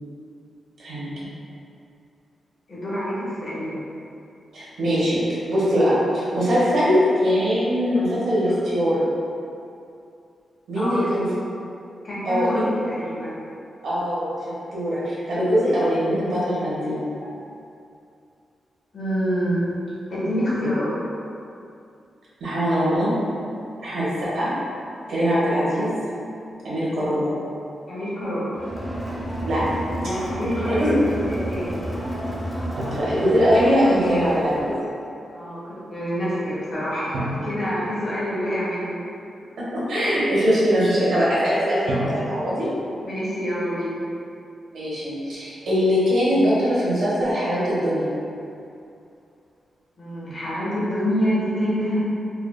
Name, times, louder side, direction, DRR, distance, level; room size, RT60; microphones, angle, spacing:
voice 1, 0.8-1.1 4.5-9.0 10.7-11.2 12.2-12.7 13.8-14.3 14.7-17.0 20.6-20.7 22.4-23.1 23.8-24.5 25.1-25.9 26.6-27.3 29.4-29.6 30.7-31.0 32.7-34.7 39.6-42.7 44.7-48.1, equal, 80° right, -9 dB, 1.3 m, -21 dB
voice 2, 2.7-3.8 10.7-11.0 12.0-13.3 18.9-19.7 20.1-21.0 27.9-28.5 30.0-31.8 35.3-39.0 43.0-43.9 50.0-52.0, equal, 45° left, -10 dB, 1.3 m, -26 dB
Crowd, 28.5-34.8, equal, ahead, 0.5 m, -31 dB
Drum, 32.8-34.2 37.1-38.9 41.9-43.5, right 1 dB, 50° right, 0.7 m, -33 dB
4.8 x 2.6 x 2.3 m, 2.5 s
wide cardioid pair, 170°, 0 cm